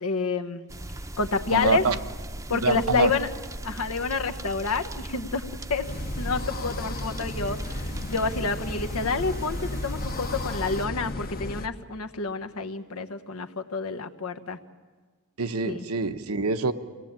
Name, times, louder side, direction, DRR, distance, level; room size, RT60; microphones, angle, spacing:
voice 1, 0.0-0.7 1.2-1.8 2.5-3.3 3.6-5.4 5.7-5.9 6.2-14.6 15.6-15.8, left 4 dB, 90° left, 7 dB, 1.2 m, -28 dB
sound 1, 0.7-10.9, right 1 dB, 15° right, 0.7 m, -38 dB
voice 2, 1.5-2.0 2.5-3.1 15.4-16.7, right 4 dB, 80° right, 9 dB, 0.9 m, -26 dB
sound 2, 5.9-11.7, left 2 dB, 45° left, 0.9 m, -34 dB
24.0 x 17.5 x 8.8 m, 1.5 s
head